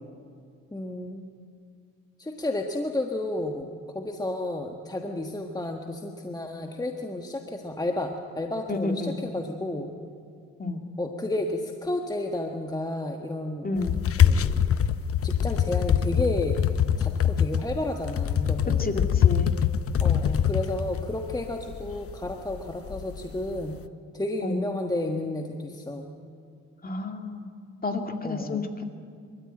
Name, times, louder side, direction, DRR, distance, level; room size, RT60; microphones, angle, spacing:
voice 1, 0.7-1.3 2.2-3.7 3.9-9.9 11.0-13.7 14.2-14.6 15.2-16.6 17.0-18.9 20.0-23.8 24.1-26.1 28.2-28.7, left 2 dB, 15° left, 3 dB, 1.4 m, -31 dB
voice 2, 8.7-9.2 10.6-10.8 13.6-14.0 18.8-19.5 24.4-24.6 26.8-27.5 27.8-28.9, left 2 dB, 30° left, 5 dB, 2.3 m, -30 dB
sound 1, 13.8-23.7, left 8 dB, 50° left, 0.8 m, -24 dB
24.5 x 13.5 x 8.9 m, 2.4 s
cardioid pair, 90°, 30 cm